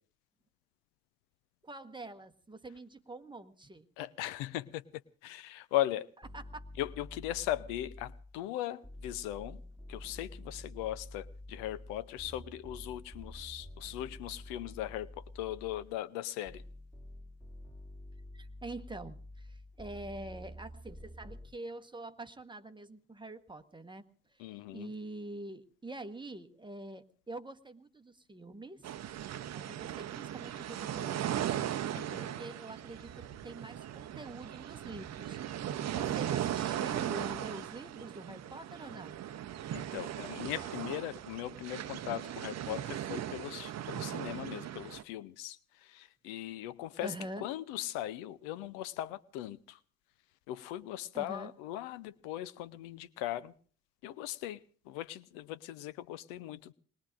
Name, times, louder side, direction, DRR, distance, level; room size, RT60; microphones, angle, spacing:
voice 1, 1.6-3.9 6.3-6.6 18.3-24.0 24.3-28.9 29.5-31.6 32.2-35.4 35.9-39.2 47.0-47.5 51.1-51.5, right 2 dB, 10° right, 1.1 m, -45 dB
voice 2, 4.0-4.8 5.2-6.1 6.8-9.6 9.9-16.6 24.4-24.9 31.9-32.4 39.7-47.1 47.4-49.8 50.5-53.5 54.0-54.6 54.9-56.7, left 13 dB, 65° left, 0.7 m, -39 dB
sound 1, 6.2-8.4 8.8-16.0 16.5-21.5, left 1 dB, 10° left, 2.4 m, -49 dB
sound 2, 28.8-45.0, right 11 dB, 40° right, 0.7 m, -38 dB
27.0 x 20.5 x 2.5 m
figure-of-eight pair, 50°, 42 cm